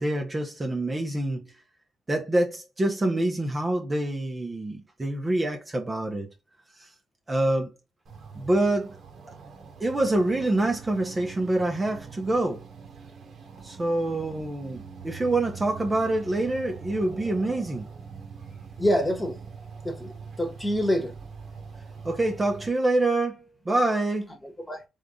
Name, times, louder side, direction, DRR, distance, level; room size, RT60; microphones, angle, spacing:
voice 1, 0.0-1.5 2.1-6.3 7.3-7.7 8.4-8.9 9.8-12.6 13.6-17.9 22.0-24.3, right 2 dB, 20° right, 1.0 m, -26 dB
sound 1, 8.1-22.7, right 5 dB, 55° right, 1.3 m, -43 dB
voice 2, 18.8-19.4 19.8-20.1 20.4-21.1 24.4-24.8, equal, 15° left, 1.5 m, -26 dB
3.7 x 3.6 x 3.8 m
cardioid pair, 90°, 0 cm